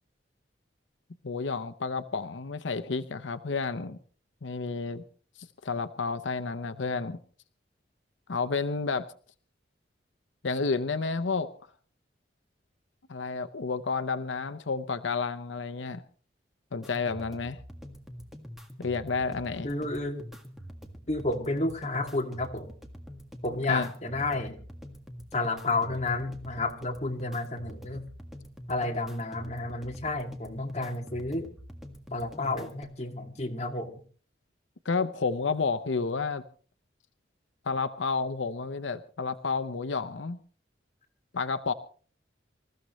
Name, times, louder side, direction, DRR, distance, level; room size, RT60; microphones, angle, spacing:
voice 1, 1.2-4.0 4.4-5.0 5.4-7.2 8.3-9.1 10.4-11.5 13.1-16.0 16.7-17.6 18.8-19.7 23.7-23.9 34.8-36.4 37.7-40.4 41.3-41.7, left 4 dB, 90° left, 11 dB, 0.8 m, -30 dB
sound 1, 16.8-32.8, equal, ahead, 1.8 m, -45 dB
voice 2, 19.6-20.3 21.1-22.7 23.4-24.6 25.3-28.1 28.7-31.5 32.1-34.0, left 2 dB, 35° left, 2 dB, 2.2 m, -31 dB
26.0 x 14.5 x 3.1 m, 0.42 s
head